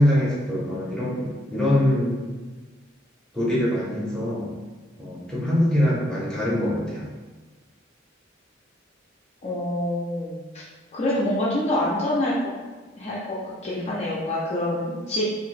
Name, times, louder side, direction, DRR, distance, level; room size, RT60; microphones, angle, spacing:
voice 1, 0.0-2.2 3.3-4.5 5.0-7.1, left 1 dB, 5° left, -8 dB, 0.8 m, -23 dB
voice 2, 9.4-10.6 10.9-12.5 12.9-15.3, left 1 dB, 35° left, -7 dB, 0.5 m, -26 dB
2.9 x 2.6 x 3.2 m, 1.3 s
head